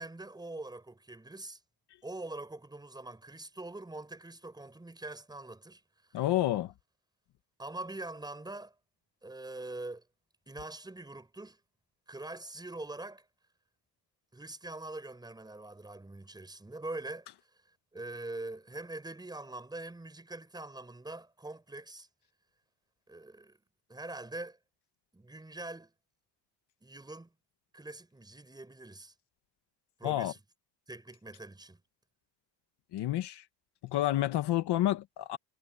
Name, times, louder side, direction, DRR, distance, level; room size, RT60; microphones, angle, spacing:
voice 1, 0.0-1.6 2.0-6.2 7.6-8.7 9.2-10.0 10.5-11.6 12.1-13.3 14.3-17.3 17.9-22.1 23.1-23.6 23.9-24.6 25.1-25.9 26.8-27.3 27.7-29.1 30.0-30.4 30.9-31.8, right 2 dB, 10° right, 5.4 m, -43 dB
voice 2, 6.1-6.7 30.0-30.3 32.9-33.4 33.8-35.4, left 14 dB, 60° left, 1.4 m, -29 dB
cardioid pair, 170°, 46 cm